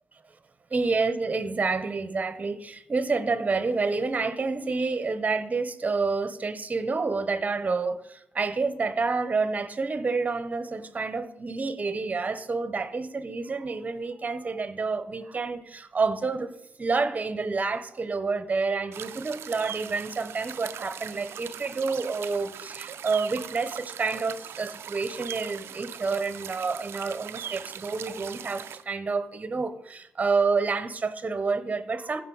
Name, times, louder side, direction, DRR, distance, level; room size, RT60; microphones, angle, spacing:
voice 1, 0.7-16.5 16.8-32.2, right 4 dB, 35° right, 1.0 m, -28 dB
sound 1, 18.9-28.8, right 9 dB, 70° right, 0.4 m, -40 dB
15.0 x 5.3 x 4.0 m
supercardioid pair, 55°, 4 cm